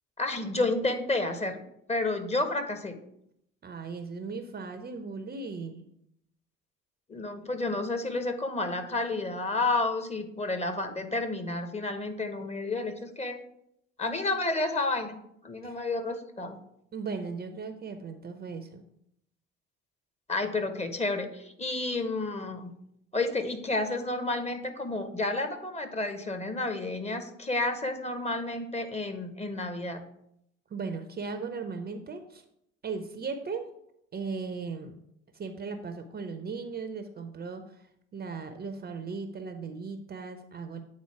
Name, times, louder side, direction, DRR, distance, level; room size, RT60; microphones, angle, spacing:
voice 1, 0.2-1.6 1.9-3.0 7.1-13.4 14.0-16.6 20.3-22.7 23.1-30.0, left 2 dB, 15° left, 7 dB, 1.0 m, -31 dB
voice 2, 3.6-5.9 15.6-15.8 16.9-18.8 30.7-32.4 32.8-33.7 34.1-35.0 35.3-37.8 38.1-40.8, right 4 dB, 25° right, 8 dB, 0.7 m, -37 dB
8.6 x 4.1 x 4.7 m, 0.75 s
figure-of-eight pair, 55°, 38 cm